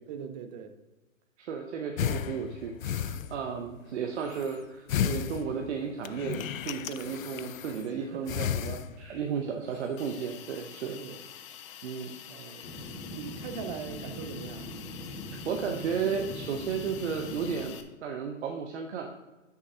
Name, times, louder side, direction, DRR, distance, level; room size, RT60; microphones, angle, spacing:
voice 1, 0.1-0.8 8.0-8.3 9.3-9.7 11.0-11.2 12.3-12.7 13.1-14.7, right 7 dB, 35° right, 0.7 m, -41 dB
voice 2, 1.4-11.0 11.8-12.2 15.4-19.1, right 6 dB, 55° right, 0.9 m, -34 dB
sound 1, 2.0-3.7 4.1-4.6 4.9-7.9 8.3-9.3 9.7-10.0, left 9 dB, 80° left, 0.5 m, -34 dB
Hiss, 10.0-17.8, left 10 dB, 25° left, 0.5 m, -47 dB
sound 2, 12.6-17.6, left 1 dB, 60° left, 2.2 m, -41 dB
6.7 x 5.3 x 5.4 m
hypercardioid pair, 130°, 40 cm